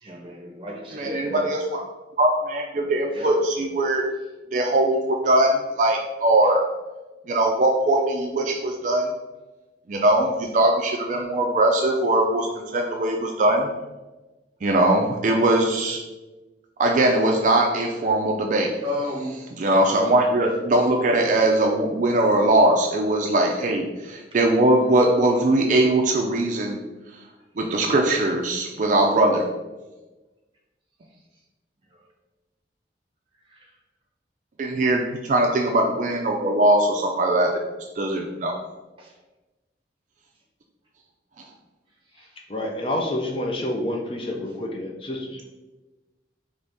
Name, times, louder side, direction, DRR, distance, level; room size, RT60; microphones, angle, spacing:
voice 1, 0.0-1.5 3.1-3.3 18.7-19.3 33.5-33.7 39.0-39.1 42.2-42.3, left 1 dB, 30° right, -1 dB, 0.9 m, -33 dB
voice 2, 0.9-1.8 2.2-4.0 4.5-6.6 7.3-9.1 9.9-13.7 14.6-16.0 16.8-18.7 19.6-26.8 27.6-29.4 34.6-37.5 38.0-38.5, right 1 dB, 45° right, 1 dB, 0.4 m, -21 dB
voice 3, 42.5-45.5, left 1 dB, 30° left, 1 dB, 0.5 m, -28 dB
3.9 x 3.0 x 3.4 m, 1.1 s
head